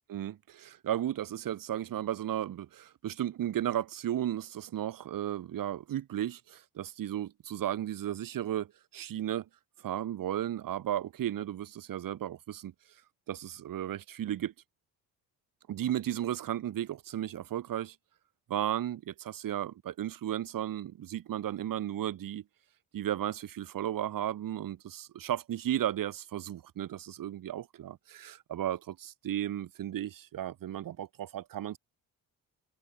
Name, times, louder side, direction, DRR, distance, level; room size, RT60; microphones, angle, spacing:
voice 1, 0.1-9.5 9.8-12.7 13.3-14.5 15.7-18.0 18.5-22.4 22.9-31.8, right 11 dB, 60° right, 2.2 m, -34 dB
cardioid pair, 95°, 37 cm